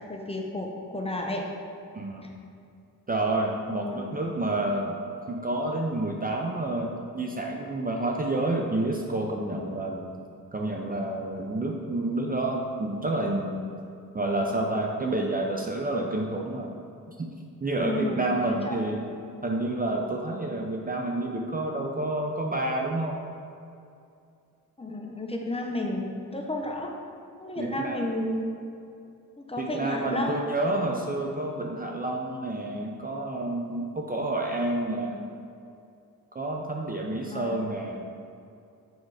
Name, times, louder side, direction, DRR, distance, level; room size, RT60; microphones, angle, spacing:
voice 1, 0.0-1.4 2.2-2.3 3.6-4.5 17.8-18.8 24.8-26.9 27.4-28.4 29.4-30.5 37.2-37.6, left 1 dB, 15° left, 1 dB, 0.9 m, -32 dB
voice 2, 1.9-2.3 3.1-5.0 5.3-10.0 10.5-13.7 14.1-16.7 17.2-17.3 17.6-19.0 19.4-23.2 27.6-28.0 29.6-35.3 36.3-38.0, right 2 dB, 25° right, 1 dB, 0.6 m, -29 dB
6.6 x 4.7 x 4.9 m, 2.5 s
cardioid pair, 80°, 35 cm